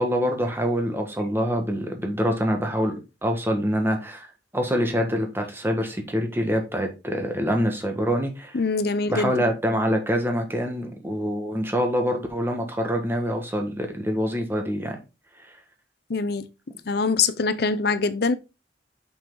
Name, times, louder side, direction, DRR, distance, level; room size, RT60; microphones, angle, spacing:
voice 1, 0.0-4.3 4.5-8.6 9.1-15.0, equal, 10° right, 1.5 m, -25 dB
voice 2, 8.5-9.3 16.1-16.5 16.9-18.3, left 4 dB, 60° left, 0.6 m, -23 dB
5.7 x 5.5 x 3.8 m
head